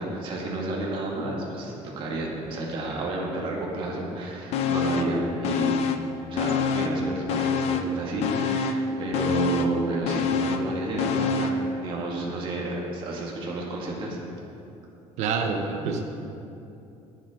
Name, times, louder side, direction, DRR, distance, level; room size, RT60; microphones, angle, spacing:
voice 1, 0.0-5.8 6.3-14.2, right 2 dB, 45° right, -2 dB, 2.1 m, -31 dB
sound 1, 4.5-5.2 5.4-7.0 7.3-11.7 12.0-12.1, left 5 dB, 55° left, 0.6 m, -26 dB
voice 2, 15.2-16.0, right 5 dB, 65° right, 4 dB, 1.0 m, -27 dB
19.5 x 7.6 x 3.8 m, 2.8 s
cardioid pair, 175°, 13 cm